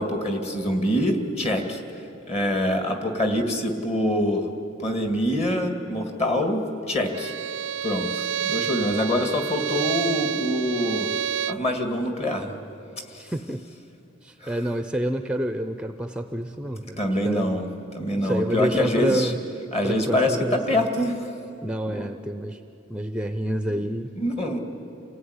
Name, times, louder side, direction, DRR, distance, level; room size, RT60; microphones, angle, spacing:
voice 1, 0.0-1.8 2.3-4.5 4.8-7.3 7.8-11.1 11.5-12.5 13.1-13.2 14.4-14.6 17.0-19.3 19.7-21.4 21.9-22.1 23.7-23.8 24.2-24.6, left 1 dB, 35° left, 5 dB, 2.2 m, -25 dB
Bowed string instrument, 7.1-11.7, right 9 dB, 70° right, 0.5 m, -29 dB
voice 2, 13.2-13.6 14.2-17.5 18.2-19.4 19.8-20.9 21.6-22.6 22.9-24.1, right 1 dB, 5° right, 8 dB, 0.5 m, -28 dB
27.0 x 16.5 x 9.7 m, 2.8 s
head